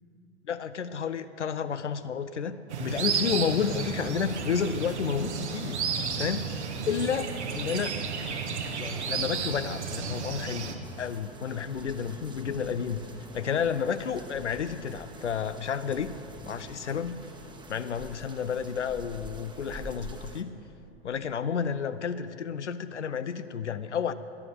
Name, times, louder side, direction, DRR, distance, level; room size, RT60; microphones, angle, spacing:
voice 1, 0.5-5.8 6.2-6.5 6.8-8.0 8.8-10.7 11.0-13.0 13.3-16.1 16.5-17.2 17.7-20.5 21.0-24.1, left 7 dB, 85° left, 11 dB, 0.6 m, -31 dB
sound 1, 2.7-10.8, right 5 dB, 70° right, 1.7 m, -32 dB
sound 2, 10.8-20.4, right 2 dB, 15° right, 1.3 m, -46 dB
18.0 x 11.0 x 6.7 m, 2.8 s
figure-of-eight pair, 90°, 35 cm